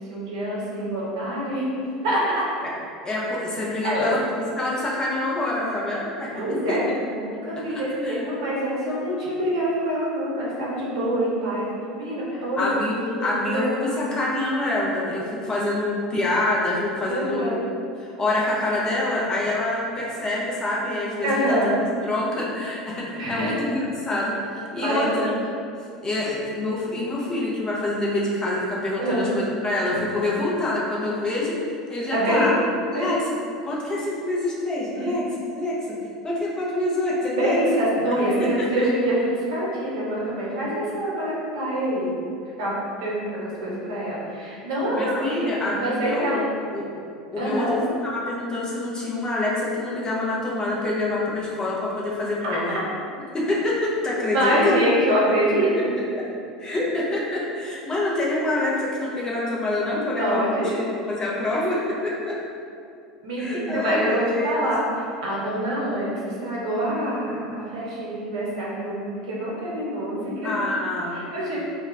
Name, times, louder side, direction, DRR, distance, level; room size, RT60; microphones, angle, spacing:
voice 1, 0.1-2.4 3.8-4.2 6.3-11.7 12.0-12.8 13.2-13.7 17.1-17.6 21.2-21.8 23.1-23.5 24.8-25.3 29.0-29.3 32.1-32.5 32.9-33.2 34.9-35.1 37.3-42.1 42.6-42.7 43.0-45.5 45.8-46.5 47.4-47.8 52.4-52.6 54.3-56.1 60.0-60.8 63.2-64.8 65.2-70.6 71.3-71.6, right 1 dB, 65° right, -6 dB, 0.7 m, -25 dB
voice 2, 3.0-6.3 6.7-7.0 7.6-8.2 12.3-17.6 18.0-21.6 22.0-25.4 26.0-31.6 31.9-32.5 32.9-33.3 33.6-35.3 35.5-35.8 36.2-37.6 38.4-38.9 44.9-46.4 46.7-46.9 47.3-52.7 53.3-54.7 56.6-62.3 63.4-64.7 70.4-71.3, left 2 dB, 20° left, -6 dB, 0.6 m, -26 dB
2.2 x 2.2 x 3.1 m, 2.4 s
figure-of-eight pair, 75°, 3 cm